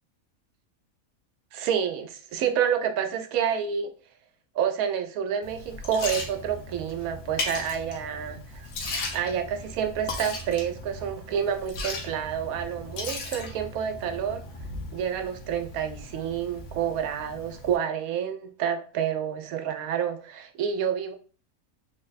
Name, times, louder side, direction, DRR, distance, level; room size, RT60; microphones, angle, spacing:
voice 1, 1.5-3.9 4.5-8.7 9.1-14.4 14.9-21.2, right 8 dB, 90° right, 7 dB, 1.0 m, -29 dB
Liquid, 5.4-17.8, left 2 dB, 75° left, 1.2 m, -37 dB
3.6 x 2.1 x 3.9 m, 0.38 s
omnidirectional pair, 1.5 m